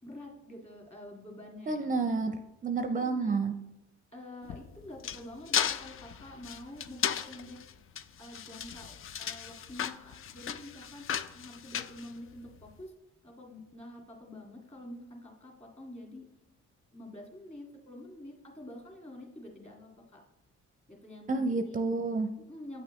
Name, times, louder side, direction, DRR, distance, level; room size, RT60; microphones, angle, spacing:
voice 1, 0.0-2.2 2.9-3.4 4.1-7.6 8.2-12.9 13.2-16.2 16.9-20.2 20.9-21.8 22.5-22.8, left 1 dB, 20° left, 0 dB, 2.0 m, -47 dB
voice 2, 1.7-3.5 21.3-22.3, right 3 dB, 25° right, 6 dB, 0.5 m, -30 dB
sound 1, 4.4-12.7, left 8 dB, 45° left, 0.4 m, -36 dB
8.8 x 6.2 x 3.1 m, 0.92 s
cardioid pair, 90°, 30 cm